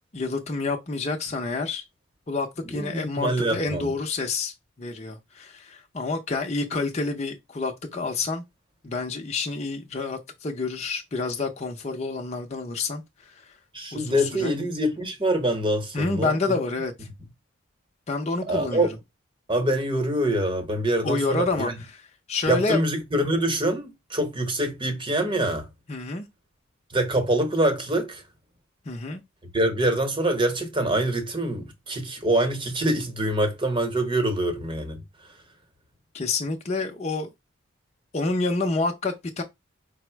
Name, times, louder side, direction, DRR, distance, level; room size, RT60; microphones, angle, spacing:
voice 1, 0.1-1.8 2.3-8.4 8.8-13.0 13.4-13.5 13.9-14.5 15.9-17.1 18.1-19.0 21.0-22.0 22.3-22.8 25.9-26.3 28.9-29.2 36.1-37.3 38.1-39.4, left 3 dB, 30° left, 0.6 m, -28 dB
voice 2, 2.6-3.9 13.7-16.6 18.5-18.9 19.5-21.7 22.5-25.7 26.9-28.2 29.5-35.0, right 1 dB, 25° right, 1.0 m, -25 dB
5.3 x 2.0 x 4.4 m
head